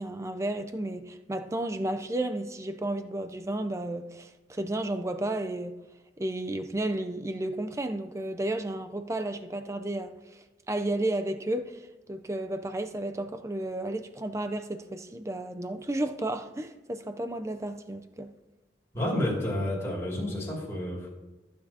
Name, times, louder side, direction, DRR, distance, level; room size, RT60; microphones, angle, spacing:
voice 1, 0.0-5.8 6.2-11.8 12.1-18.3, right 1 dB, 15° right, 0.5 m, -32 dB
voice 2, 18.9-21.1, left 1 dB, 15° left, 2.4 m, -30 dB
14.5 x 8.5 x 2.8 m
head